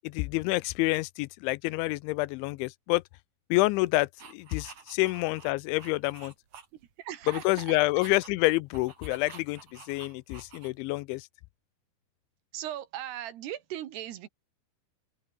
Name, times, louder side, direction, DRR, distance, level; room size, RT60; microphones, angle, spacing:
voice 1, 0.0-3.0 3.5-6.3 7.3-11.3, left 22 dB, 90° left, 3.0 m, -28 dB
sound 1, 4.2-6.9 7.2-11.0, right 6 dB, 40° right, 3.9 m, -51 dB
voice 2, 7.0-7.8 12.5-14.3, right 12 dB, 70° right, 3.4 m, -38 dB
omnidirectional pair, 5.3 m